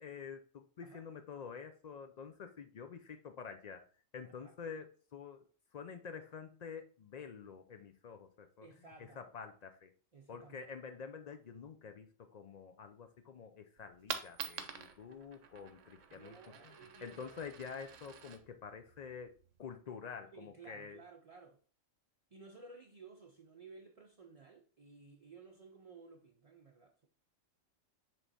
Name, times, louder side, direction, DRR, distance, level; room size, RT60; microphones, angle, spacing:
voice 1, 0.0-3.8 4.1-5.4 5.7-8.7 9.2-9.9 10.3-16.4 16.6-16.7 17.0-19.3 19.6-21.0, left 6 dB, 90° left, 0.3 m, -48 dB
voice 2, 8.6-9.3 10.1-10.6 16.1-17.4 20.3-21.6 22.3-27.1, right 4 dB, 45° right, 0.5 m, -56 dB
Coin (dropping), 13.8-19.8, right 7 dB, 70° right, 1.0 m, -48 dB
7.4 x 3.4 x 4.0 m
omnidirectional pair, 1.4 m